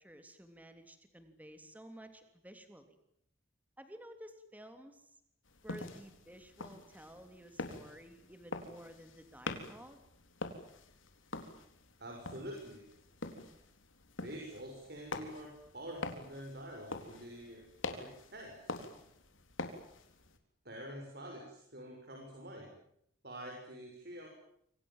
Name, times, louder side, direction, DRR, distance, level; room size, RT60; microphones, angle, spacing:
voice 1, 0.0-3.0 3.8-5.1 5.6-10.0, right 1 dB, 10° right, 7 dB, 3.3 m, -53 dB
sound 1, 5.5-20.4, left 2 dB, 75° left, 3.8 m, -46 dB
voice 2, 12.0-12.9 14.2-18.8 20.6-22.7 23.2-24.3, equal, 50° right, 1 dB, 6.7 m, -47 dB
28.0 x 25.5 x 7.5 m, 0.72 s
head